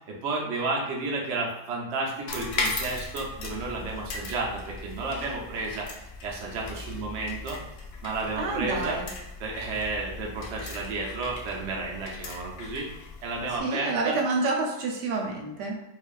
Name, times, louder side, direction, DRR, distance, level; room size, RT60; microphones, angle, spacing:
voice 1, 0.1-7.6 8.0-9.0 9.4-12.9 13.2-14.2, right 3 dB, 55° right, -2 dB, 0.9 m, -32 dB
sound 1, 2.3-13.6, left 3 dB, 65° left, 0.6 m, -38 dB
voice 2, 8.4-9.1 13.6-15.8, right 3 dB, 80° right, 0 dB, 1.3 m, -28 dB
4.5 x 2.6 x 2.4 m, 0.94 s
omnidirectional pair, 1.8 m